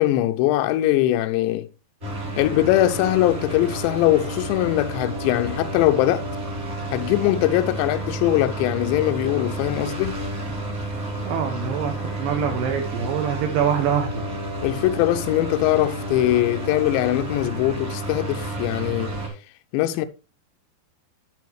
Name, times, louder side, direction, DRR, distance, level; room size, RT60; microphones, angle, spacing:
voice 1, 0.0-1.7 2.4-6.2 6.9-10.2 14.6-19.2 19.7-20.1, left 14 dB, 85° left, 2.9 m, -21 dB
sound 1, 2.0-19.3, right 1 dB, 30° right, 1.3 m, -30 dB
voice 2, 11.2-14.3, right 8 dB, 70° right, 2.3 m, -25 dB
12.0 x 5.6 x 3.1 m
omnidirectional pair, 5.0 m